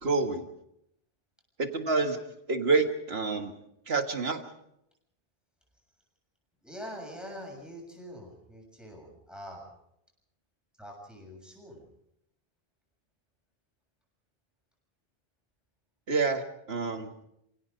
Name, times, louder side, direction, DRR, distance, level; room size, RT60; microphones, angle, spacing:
voice 1, 0.0-0.5 1.6-2.2 2.5-3.5 3.9-4.4 16.1-16.4 16.7-17.1, right 4 dB, 75° right, 6 dB, 1.9 m, -27 dB
voice 2, 6.6-9.7 10.8-11.8, equal, ahead, 0 dB, 6.9 m, -44 dB
29.5 x 17.0 x 5.2 m, 0.78 s
omnidirectional pair, 1.1 m